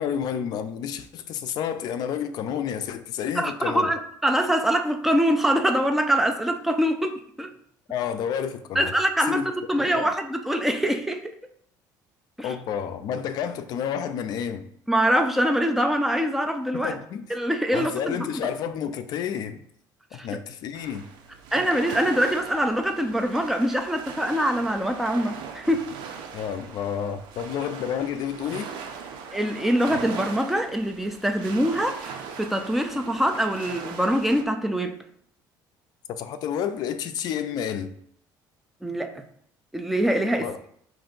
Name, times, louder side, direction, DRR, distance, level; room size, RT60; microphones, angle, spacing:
voice 1, 0.0-3.9 7.9-8.9 9.3-9.5 9.8-10.1 12.4-14.6 16.7-17.3 17.7-19.6 20.1-21.1 26.3-28.8 36.1-37.9 40.4-40.6, left 8 dB, 55° left, 10 dB, 0.4 m, -30 dB
voice 2, 3.4-7.5 8.8-11.3 12.4-12.5 14.9-17.0 17.3-18.3 20.2-20.4 21.5-25.9 29.3-35.0 38.8-39.2 39.7-40.5, equal, 5° right, 5 dB, 0.4 m, -24 dB
sound 1, 20.7-34.4, right 6 dB, 70° right, 0.6 m, -39 dB
5.2 x 2.6 x 3.8 m, 0.65 s
cardioid pair, 140°, 8 cm